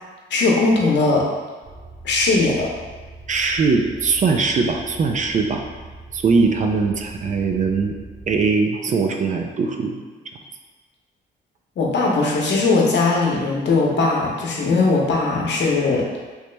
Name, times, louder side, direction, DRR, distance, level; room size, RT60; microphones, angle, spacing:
voice 1, 0.3-1.2 2.0-2.7 11.8-16.0, left 3 dB, 65° left, -2 dB, 0.9 m, -19 dB
sound 1, 1.6-8.5, right 2 dB, 15° right, 0.8 m, -41 dB
voice 2, 3.3-5.6 6.1-8.0 8.3-10.0, right 4 dB, 40° right, 3 dB, 0.4 m, -20 dB
3.1 x 2.9 x 3.3 m, 1.4 s
cardioid pair, 90°, 20 cm